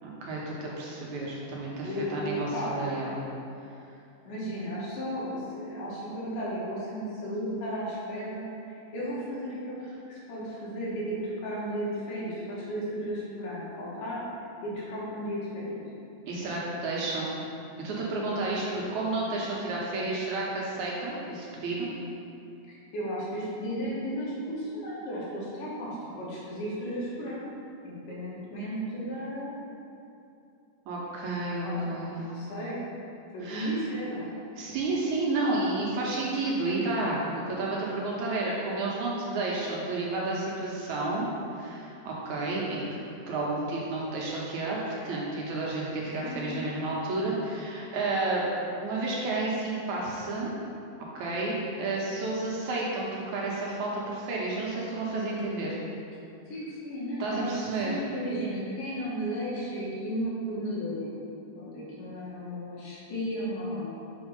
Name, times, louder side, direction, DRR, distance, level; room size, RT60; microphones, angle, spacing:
voice 1, 0.0-3.2 16.3-17.3 17.8-21.9 30.9-32.3 33.4-33.7 34.6-43.0 43.3-48.5 48.8-50.5 51.2-55.8 57.2-58.0, right 2 dB, 70° right, -4 dB, 2.2 m, -31 dB
voice 2, 1.8-2.7 4.2-9.8 10.1-14.2 14.6-15.8 22.7-27.4 27.8-29.6 31.6-31.8 32.1-32.8 33.3-34.3 46.2-46.6 56.5-61.1 61.5-64.0, equal, 75° left, -7 dB, 3.3 m, -34 dB
7.2 x 4.4 x 5.2 m, 2.6 s
omnidirectional pair, 3.8 m